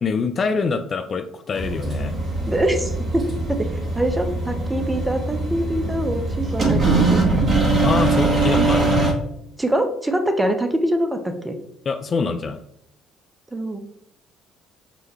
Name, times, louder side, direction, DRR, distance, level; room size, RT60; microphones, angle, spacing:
voice 1, 0.0-2.2 7.8-9.0 11.9-12.6, left 5 dB, 35° left, 8 dB, 0.3 m, -24 dB
sound 1, 1.5-9.1, right 2 dB, 35° right, 1.1 m, -21 dB
voice 2, 2.5-3.2 4.0-7.2 9.6-11.6 13.5-13.8, right 1 dB, 15° right, 6 dB, 0.7 m, -23 dB
6.1 x 2.2 x 3.2 m, 0.73 s
figure-of-eight pair, 50°, 0 cm